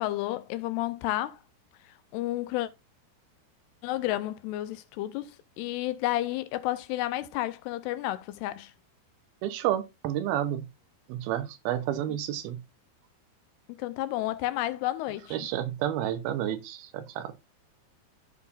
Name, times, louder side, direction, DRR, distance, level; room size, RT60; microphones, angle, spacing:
voice 1, 0.0-1.4 2.1-2.7 3.8-8.7 12.1-12.2 13.8-15.4, left 15 dB, 90° left, 2.7 m, -31 dB
voice 2, 9.4-10.7 11.1-12.6 15.3-17.3, right 11 dB, 75° right, 2.5 m, -30 dB
15.0 x 5.6 x 2.5 m
omnidirectional pair, 4.7 m